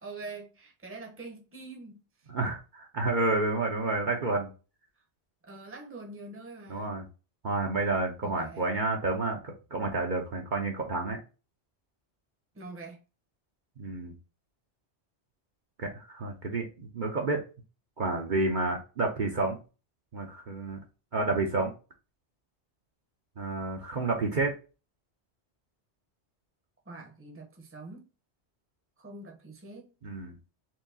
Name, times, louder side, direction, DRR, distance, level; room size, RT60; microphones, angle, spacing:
voice 1, 0.0-2.1 5.4-7.0 8.2-8.7 12.5-13.0 26.9-28.1 29.0-29.9, right 3 dB, 15° right, 0.8 m, -44 dB
voice 2, 2.3-4.5 6.7-7.0 7.4-11.2 13.8-14.1 15.8-17.4 18.0-19.6 20.1-20.8 21.1-21.7 23.4-24.5 30.0-30.4, right 3 dB, 50° right, 0.8 m, -30 dB
4.6 x 2.9 x 2.7 m
omnidirectional pair, 1.1 m